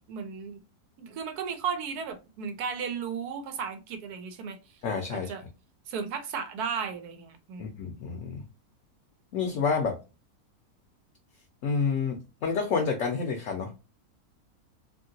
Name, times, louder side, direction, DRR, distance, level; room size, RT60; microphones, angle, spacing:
voice 1, 0.1-0.6 1.0-4.6 5.1-5.4 5.9-7.7, right 6 dB, 85° right, 7 dB, 1.2 m, -35 dB
voice 2, 4.8-5.3 7.6-8.4 9.3-10.0 11.6-13.7, left 5 dB, 65° left, 2 dB, 0.9 m, -29 dB
2.9 x 2.7 x 2.6 m, 0.28 s
omnidirectional pair, 1.6 m